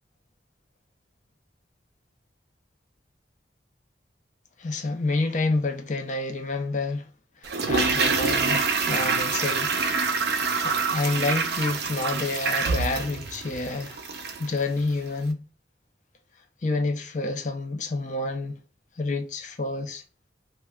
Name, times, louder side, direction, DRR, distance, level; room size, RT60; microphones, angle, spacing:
voice 1, 4.6-7.1 7.4-9.8 10.6-14.0 14.4-15.4 16.6-18.6 19.0-20.0, left 3 dB, 45° left, 0.5 m, -28 dB
Toilet flush, 7.4-14.5 14.8-14.9, right 4 dB, 65° right, 0.4 m, -26 dB
2.2 x 2.1 x 3.5 m
head